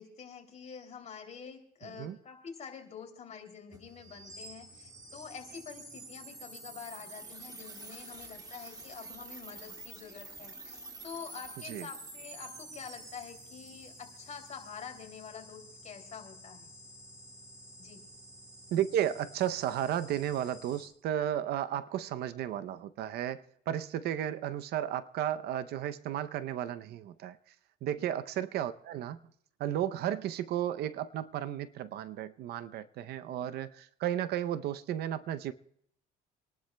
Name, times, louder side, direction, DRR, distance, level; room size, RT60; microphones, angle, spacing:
voice 1, 0.0-16.7 17.8-18.0 28.0-28.1, left 6 dB, 45° left, 2.9 m, -47 dB
sound 1, 3.7-20.9, right 2 dB, 25° right, 1.9 m, -49 dB
voice 2, 18.7-27.4 27.8-29.2 29.6-35.5, right 11 dB, 75° right, 0.7 m, -33 dB
27.5 x 11.5 x 2.2 m
cardioid pair, 110°, 17 cm